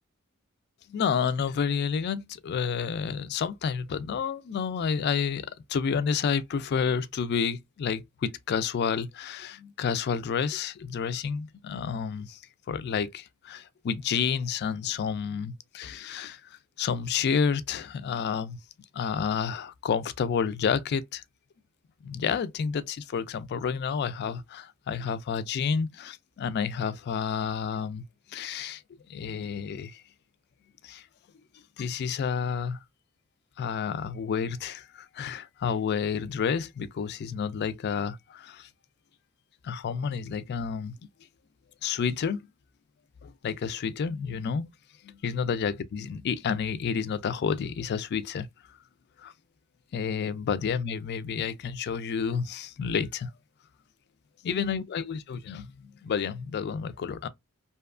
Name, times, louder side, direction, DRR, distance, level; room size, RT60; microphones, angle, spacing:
voice 1, 0.9-12.4 12.7-18.6 18.9-21.2 22.0-28.0 28.3-28.8 29.1-30.0 30.8-31.0 31.8-32.8 33.6-38.7 39.6-41.0 41.8-42.5 43.2-44.6 45.0-48.5 49.2-49.3 49.9-53.3 54.5-57.3, left 6 dB, 50° left, 0.3 m, -30 dB
2.7 x 2.2 x 2.3 m
head